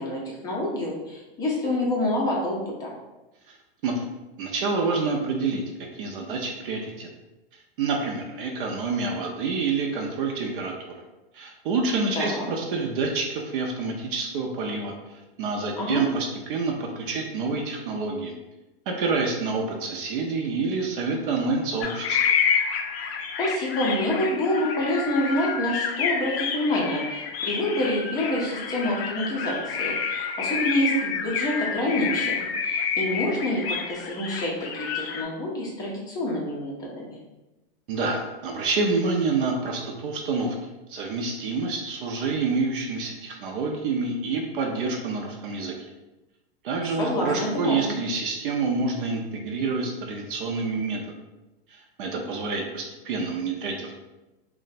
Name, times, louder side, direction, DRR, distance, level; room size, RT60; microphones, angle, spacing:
voice 1, 0.0-2.9 12.2-12.5 15.8-16.0 23.4-33.6 33.9-37.2 47.0-48.0, left 1 dB, 15° left, -3 dB, 0.5 m, -27 dB
voice 2, 4.4-5.6 5.9-7.1 7.8-11.0 11.3-14.9 15.4-18.3 18.9-22.2 37.9-40.6 40.9-45.7 46.6-51.2 51.7-54.0, right 4 dB, 60° right, 1 dB, 0.5 m, -27 dB
sound 1, 21.8-35.2, left 6 dB, 80° left, 0.5 m, -28 dB
2.5 x 2.2 x 4.0 m, 1.0 s
supercardioid pair, 150°, 30 cm